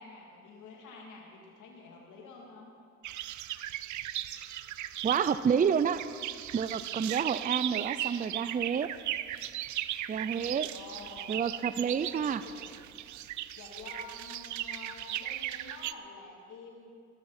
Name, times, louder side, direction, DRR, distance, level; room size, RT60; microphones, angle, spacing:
voice 1, 0.0-2.7 10.7-11.4 11.8-12.9 13.6-16.9, left 3 dB, 80° left, -2 dB, 3.0 m, -49 dB
sound 1, 3.0-15.9, right 13 dB, 75° right, 0.6 m, -37 dB
voice 2, 5.0-6.0 6.5-8.9 10.1-10.7 11.3-12.4, right 7 dB, 30° right, 13 dB, 0.5 m, -29 dB
18.5 x 14.5 x 4.3 m, 2.3 s
cardioid pair, 90°, 30 cm